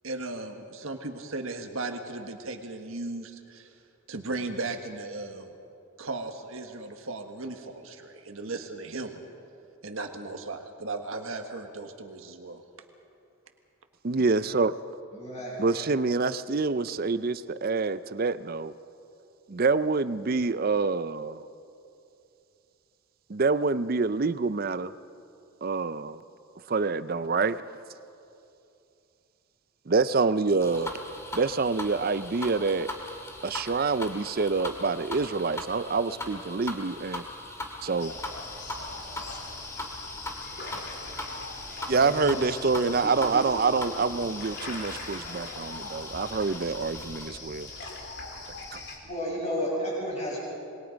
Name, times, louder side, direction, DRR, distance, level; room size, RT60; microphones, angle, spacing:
voice 1, 0.0-3.8 4.1-5.5 6.0-9.2 9.8-12.6, right 3 dB, 75° right, 5 dB, 1.5 m, -36 dB
voice 2, 14.0-14.8 15.6-18.7 19.5-21.4 23.3-24.9 25.6-26.2 26.7-27.6 29.9-30.9 31.3-32.9 33.4-37.2 37.8-38.1 41.9-47.7 48.7-48.8, right 4 dB, 45° right, 14 dB, 0.5 m, -26 dB
voice 3, 15.1-16.2 41.9-43.5 43.8-44.1 49.0-50.4, equal, 30° left, -4 dB, 7.3 m, -34 dB
sound 1, 30.6-47.3, left 1 dB, 15° left, 2.0 m, -40 dB
sound 2, 38.0-49.0, left 3 dB, 50° left, 3.3 m, -41 dB
26.5 x 21.5 x 5.2 m, 2.7 s
head